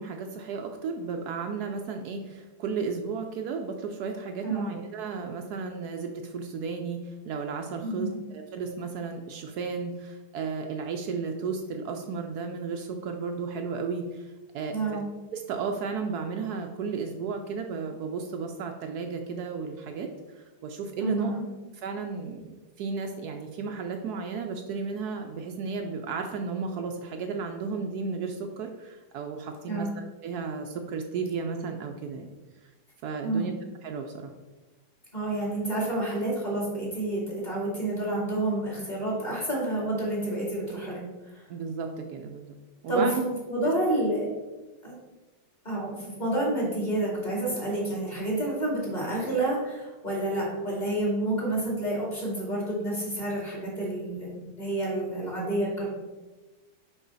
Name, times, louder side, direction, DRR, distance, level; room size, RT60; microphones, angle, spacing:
voice 1, 0.0-7.0 7.3-14.8 15.3-21.3 21.8-32.3 33.0-33.5 33.8-34.3 41.5-42.5 42.8-43.2, right 5 dB, 75° right, 4 dB, 1.1 m, -34 dB
voice 2, 7.8-8.2 14.7-15.0 21.0-21.4 29.7-29.9 33.2-33.5 35.1-41.0 41.3-41.4 42.9-44.3 44.8-44.9 45.6-55.9, right 1 dB, 25° left, -4 dB, 2.4 m, -29 dB
6.1 x 5.4 x 3.9 m, 1.2 s
omnidirectional pair, 1.8 m